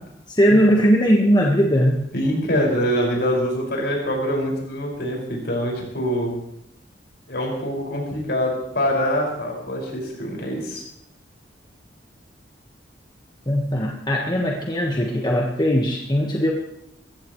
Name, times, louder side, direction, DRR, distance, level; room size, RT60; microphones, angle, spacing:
voice 1, 0.3-2.0 13.5-16.5, equal, 25° left, 0 dB, 1.5 m, -19 dB
voice 2, 2.1-6.4 7.3-10.8, equal, 65° left, -1 dB, 5.9 m, -24 dB
22.5 x 16.0 x 3.2 m, 0.78 s
head